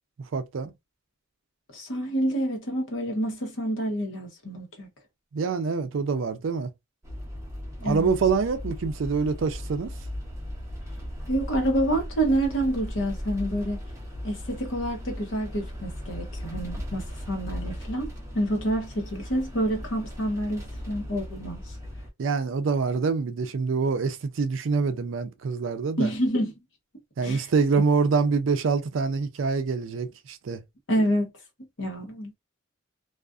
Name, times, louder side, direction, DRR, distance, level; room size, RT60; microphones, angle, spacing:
voice 1, 0.3-0.7 5.3-6.7 7.8-9.9 22.2-26.1 27.2-30.6, right 4 dB, 65° right, 0.4 m, -25 dB
voice 2, 1.7-4.9 7.8-8.1 11.3-13.8 14.2-18.1 18.3-21.6 26.0-26.5 27.2-27.5 30.9-31.3 31.8-32.3, right 1 dB, 65° left, 1.0 m, -28 dB
sound 1, 7.0-22.1, equal, 15° right, 0.7 m, -37 dB
2.4 x 2.4 x 2.3 m
head